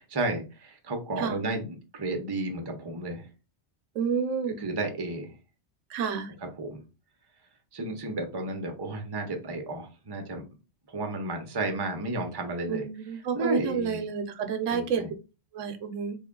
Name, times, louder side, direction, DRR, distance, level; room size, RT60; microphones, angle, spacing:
voice 1, 0.1-1.7 1.9-3.2 4.6-5.3 6.6-6.8 7.7-10.4 10.9-12.8 13.3-14.0 14.7-15.1, right 2 dB, 25° right, 4 dB, 0.6 m, -32 dB
voice 2, 1.2-1.5 4.0-4.6 5.9-6.3 12.7-15.1 15.5-16.2, right 6 dB, 80° right, 8 dB, 0.9 m, -30 dB
3.4 x 2.4 x 3.6 m, 0.31 s
omnidirectional pair, 1.3 m